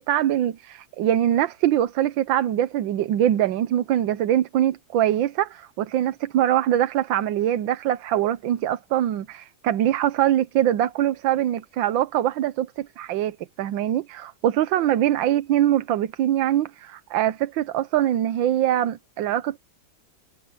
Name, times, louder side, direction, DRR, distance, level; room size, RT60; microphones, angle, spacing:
voice 1, 0.0-19.6, right 11 dB, 85° right, 1.5 m, -23 dB
omnidirectional pair, 2.0 m